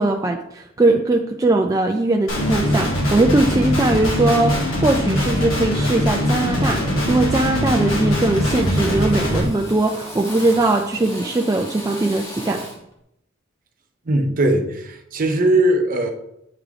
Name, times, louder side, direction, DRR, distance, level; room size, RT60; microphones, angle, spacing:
voice 1, 0.0-12.6, right 2 dB, 15° right, 2 dB, 0.3 m, -20 dB
Guitar, 2.3-9.4, left 1 dB, 70° left, 1.8 m, -21 dB
Drill, 8.3-12.9, equal, 20° left, 1.5 m, -38 dB
voice 2, 14.1-16.1, right 1 dB, 45° right, 5 dB, 0.8 m, -19 dB
9.4 x 3.3 x 3.5 m, 0.79 s
head